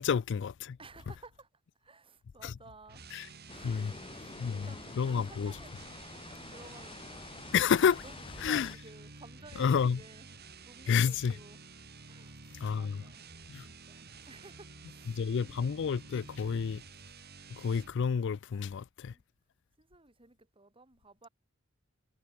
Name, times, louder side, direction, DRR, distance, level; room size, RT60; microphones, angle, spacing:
voice 1, 0.0-0.8 2.4-2.5 3.1-3.3 3.6-3.9 4.4-4.7 5.0-5.5 7.5-8.0 8.4-8.7 9.6-10.0 10.9-11.4 12.6-13.0 13.5-13.6 15.1-16.8 17.6-19.1, left 6 dB, 60° left, 0.4 m, -29 dB
voice 2, 0.8-1.5 1.8-3.0 3.3-5.7 6.1-7.5 7.8-10.4 10.6-11.6 12.1-12.4 12.7-13.3 13.6-15.8 19.1-19.2 19.8-21.3, right 3 dB, 25° right, 2.6 m, -55 dB
sound 1, 2.9-18.0, right 3 dB, 50° right, 5.8 m, -51 dB
sound 2, 3.5-8.8, left 3 dB, 25° left, 1.6 m, -47 dB
head